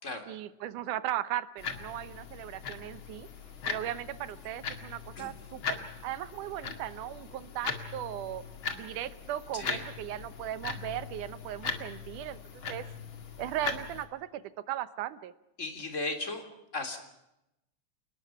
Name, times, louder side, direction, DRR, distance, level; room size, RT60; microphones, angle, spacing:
voice 1, 0.3-3.3 3.7-8.4 8.7-12.4 12.7-12.8 13.4-15.3, right 12 dB, 85° right, 14 dB, 2.5 m, -37 dB
sound 1, 1.6-14.0, left 5 dB, 45° left, 2.6 m, -40 dB
voice 2, 15.6-16.5 16.7-17.0, left 2 dB, 25° left, 5 dB, 3.4 m, -35 dB
29.0 x 20.0 x 5.8 m, 0.88 s
omnidirectional pair, 3.5 m